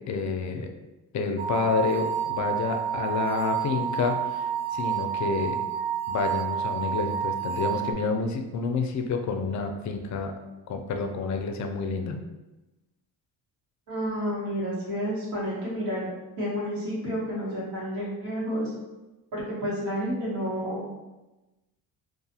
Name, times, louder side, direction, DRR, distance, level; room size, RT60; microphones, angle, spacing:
voice 1, 0.1-0.7 1.1-5.6 6.1-10.3 10.7-12.2, left 4 dB, 45° left, 5 dB, 0.4 m, -29 dB
sound 1, 1.4-7.9, right 9 dB, 25° right, 0.6 m, -29 dB
voice 2, 13.9-16.1 16.4-18.7 19.3-20.8, equal, 70° right, -7 dB, 1.4 m, -30 dB
2.5 x 2.3 x 2.7 m, 1.0 s
supercardioid pair, 75°, 40 cm